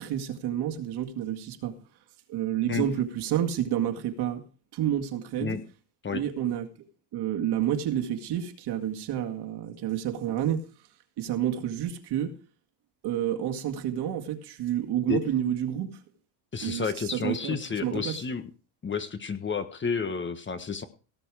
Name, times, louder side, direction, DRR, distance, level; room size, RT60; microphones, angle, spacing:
voice 1, 0.0-1.8 2.3-4.4 4.7-5.6 6.1-6.7 7.1-10.7 11.2-12.3 13.0-16.0 16.6-18.2, right 10 dB, 55° right, 2.2 m, -29 dB
voice 2, 16.5-18.5 18.8-20.8, left 5 dB, 25° left, 1.3 m, -31 dB
17.5 x 7.0 x 4.8 m
supercardioid pair, 110°, 47 cm